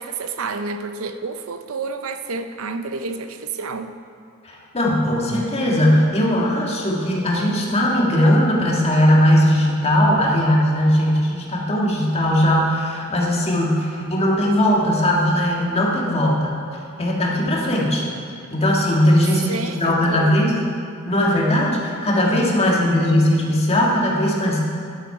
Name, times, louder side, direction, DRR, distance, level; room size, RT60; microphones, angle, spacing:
voice 1, 0.0-3.9 19.5-20.7 22.6-23.0, right 4 dB, 65° right, 9 dB, 0.6 m, -30 dB
voice 2, 4.4-16.6 17.0-18.0 18.5-20.5 21.1-24.6, left 1 dB, 30° left, -3 dB, 1.7 m, -19 dB
10.5 x 10.0 x 4.9 m, 2.4 s
head